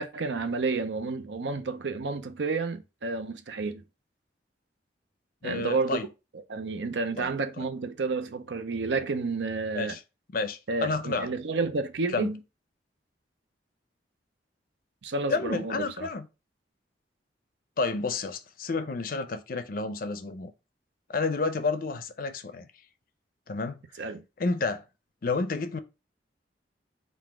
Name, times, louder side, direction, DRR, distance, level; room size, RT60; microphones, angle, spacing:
voice 1, 0.0-3.8 5.4-6.0 6.5-10.0 10.7-12.4 15.0-16.1 24.0-24.2, right 3 dB, 80° right, 0.5 m, -30 dB
voice 2, 5.4-6.1 7.2-7.3 9.7-10.0 10.3-11.3 12.1-12.3 15.3-16.3 17.8-20.5 21.1-22.7 23.5-23.8 24.4-24.8 25.2-25.8, left 3 dB, 50° left, 0.5 m, -30 dB
3.9 x 2.5 x 4.7 m
head